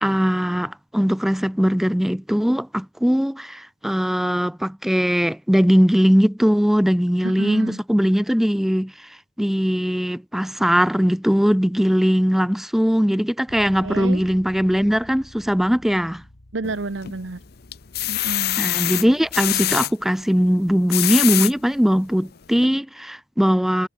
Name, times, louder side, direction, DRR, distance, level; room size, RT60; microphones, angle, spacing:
voice 1, 0.0-9.1 9.4-16.2 18.6-23.9, equal, ahead, 0.3 m, -20 dB
voice 2, 7.2-7.8 13.8-14.2 16.5-17.4 18.1-18.7, right 3 dB, 85° right, 1.1 m, -30 dB
Bass guitar, 13.5-19.7, left 1 dB, 85° left, 2.0 m, -48 dB
sound 1, 16.6-17.2 17.7-19.9 20.7-21.5 22.1-22.2 22.6-22.7, left 15 dB, 55° left, 0.7 m, -24 dB
head